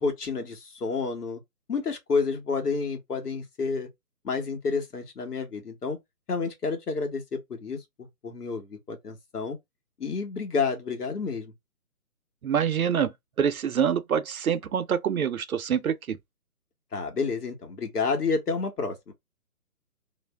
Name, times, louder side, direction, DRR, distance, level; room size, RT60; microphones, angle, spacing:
voice 1, 0.0-1.4 1.7-3.9 4.2-6.0 6.3-7.8 8.2-9.6 10.0-11.5 16.9-19.1, left 4 dB, 75° left, 1.3 m, -29 dB
voice 2, 12.4-13.1 13.4-16.2, right 8 dB, 65° right, 0.5 m, -25 dB
2.5 x 2.0 x 3.4 m
hypercardioid pair, 180°, 47 cm